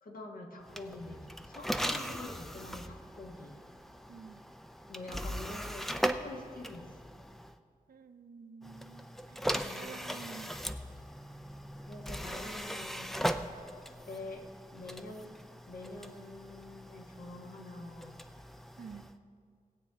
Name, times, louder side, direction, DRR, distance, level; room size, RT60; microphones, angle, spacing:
voice 1, 0.0-3.6 4.9-7.0 9.6-10.0 11.8-13.1 13.9-14.5 14.7-15.4 15.6-18.2, left 2 dB, 65° left, 0 dB, 1.5 m, -46 dB
sound 1, 0.6-7.6 8.6-19.2, equal, ahead, 0.5 m, -39 dB
voice 2, 4.1-4.4 7.9-10.5 18.8-19.1, right 5 dB, 80° right, 7 dB, 0.7 m, -50 dB
18.5 x 8.4 x 3.5 m, 2.1 s
wide cardioid pair, 90°, 15 cm